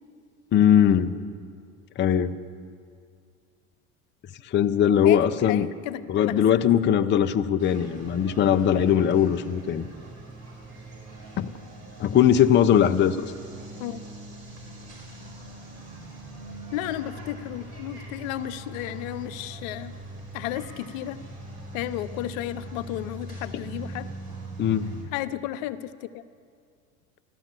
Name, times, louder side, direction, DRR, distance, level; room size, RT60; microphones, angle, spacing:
voice 1, 0.5-1.1 2.0-2.3 4.4-5.7 6.1-9.9 11.4-11.5 12.0-13.3 24.6-24.8, left 9 dB, 25° left, 8 dB, 0.6 m, -20 dB
voice 2, 5.0-6.4 13.8-14.0 16.7-19.9 20.3-21.2 21.7-24.1 25.1-26.2, left 13 dB, 70° left, 12 dB, 0.8 m, -33 dB
sound 1, 7.6-25.0, right 2 dB, 35° right, 5.1 m, -41 dB
14.5 x 13.0 x 7.5 m, 2.2 s
hypercardioid pair, 90°, 42 cm